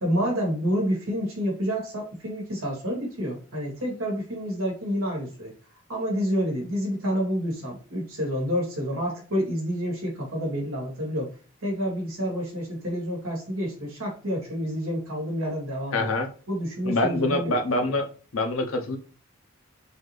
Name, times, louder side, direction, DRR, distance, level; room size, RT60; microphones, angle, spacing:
voice 1, 0.0-5.5 5.9-11.3 11.6-16.1 16.5-18.0, equal, 85° right, -1 dB, 1.8 m, -29 dB
voice 2, 15.9-16.3 16.8-18.0 18.3-19.0, left 2 dB, 75° left, 5 dB, 0.8 m, -25 dB
4.1 x 2.8 x 3.2 m, 0.38 s
head